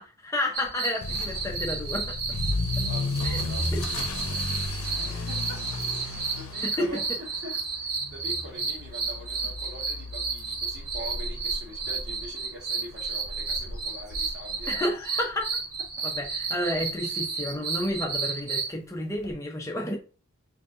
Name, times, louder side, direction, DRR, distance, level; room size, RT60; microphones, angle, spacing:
voice 1, 0.0-2.4 3.2-3.4 3.7-3.8 6.6-7.0 14.7-15.5 16.0-20.0, left 1 dB, 15° left, 0.7 m, -31 dB
sound 1, 0.5-18.7, right 4 dB, 80° right, 1.1 m, -32 dB
Motor vehicle (road) / Accelerating revving vroom, 1.0-15.9 16.2-16.5 17.1-17.2 17.5-17.6 17.8-17.9 19.2-19.3, left 2 dB, 85° left, 0.7 m, -34 dB
voice 2, 2.8-3.7 4.3-7.1 7.4-14.7 17.0-17.2, equal, 50° right, 1.4 m, -43 dB
3.9 x 2.7 x 2.7 m
head